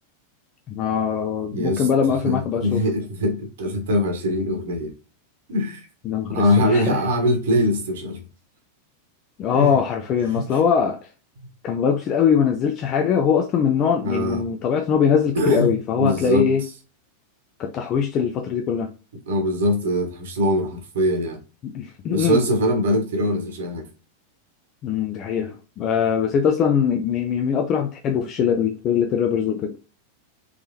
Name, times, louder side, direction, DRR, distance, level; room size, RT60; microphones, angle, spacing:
voice 1, 0.7-2.8 6.1-7.0 9.4-11.0 11.6-16.6 17.6-18.9 21.7-22.5 24.8-29.8, left 7 dB, 35° left, 0.4 m, -22 dB
voice 2, 1.5-1.9 2.2-4.9 5.5-5.9 6.3-8.2 9.5-9.8 10.3-10.5 11.4-11.5 14.0-14.5 15.3-16.5 19.3-21.4 22.1-23.9, equal, 60° right, 1.1 m, -22 dB
3.6 x 3.1 x 2.7 m
figure-of-eight pair, 90°, 0 cm